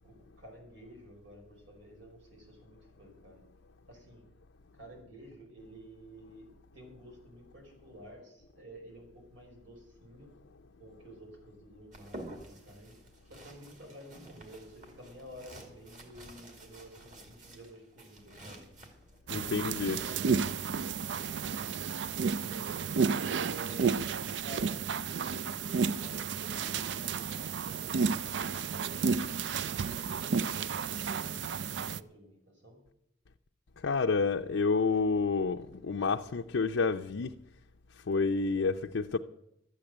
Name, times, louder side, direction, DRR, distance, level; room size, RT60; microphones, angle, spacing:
voice 1, 0.0-3.4 3.9-4.3 4.7-10.3 10.8-12.9 13.3-18.7 19.3-21.3 22.2-22.8 23.1-24.0 24.4-24.9 25.2-32.8, right 1 dB, 85° right, 5.3 m, -51 dB
sound 1, 11.9-19.2, right 1 dB, 40° right, 2.4 m, -50 dB
voice 2, 19.3-20.0 33.8-37.3 38.1-39.2, left 4 dB, 85° left, 0.5 m, -29 dB
sound 2, 19.3-32.0, right 5 dB, 70° right, 0.4 m, -32 dB
13.0 x 8.7 x 7.8 m
head